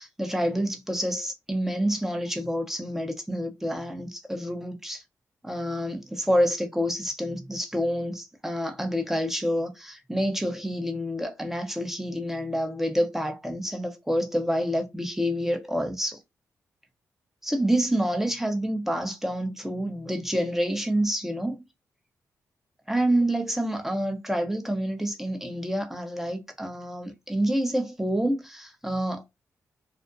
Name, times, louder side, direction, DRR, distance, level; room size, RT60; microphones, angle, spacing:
voice 1, 0.0-5.0 5.4-16.2 17.4-21.7 22.9-29.2, equal, 5° right, 0.7 m, -28 dB
2.5 x 2.1 x 2.5 m
supercardioid pair, 50°, 7 cm